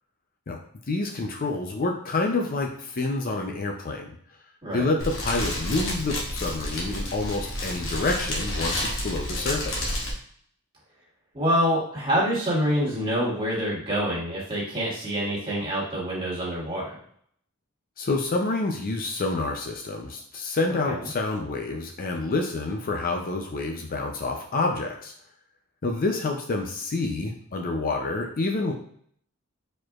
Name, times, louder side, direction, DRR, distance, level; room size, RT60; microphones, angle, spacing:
voice 1, 0.9-4.1 4.7-9.9 18.0-25.1 25.8-28.7, left 3 dB, 40° left, 2 dB, 0.5 m, -28 dB
Fire, 5.0-10.1, left 1 dB, 65° left, 1.2 m, -30 dB
voice 2, 11.3-17.0 20.7-21.0, equal, 25° right, -6 dB, 1.9 m, -26 dB
4.7 x 4.3 x 2.4 m, 0.63 s
head